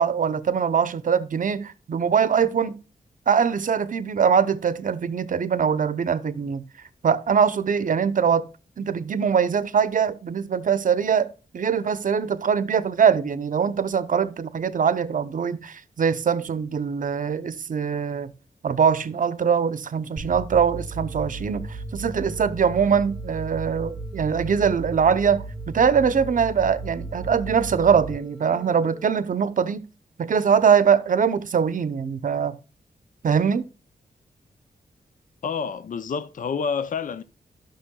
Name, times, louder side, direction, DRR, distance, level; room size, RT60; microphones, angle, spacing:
voice 1, 0.0-2.7 3.3-6.6 7.0-8.4 8.8-11.3 11.5-18.3 18.6-29.8 30.2-32.6 33.2-33.7, right 7 dB, 60° right, 0.7 m, -22 dB
sound 1, 20.2-29.2, right 2 dB, ahead, 1.3 m, -35 dB
voice 2, 35.4-37.2, left 6 dB, 55° left, 0.5 m, -28 dB
12.5 x 6.3 x 2.3 m
wide cardioid pair, 100°, 16 cm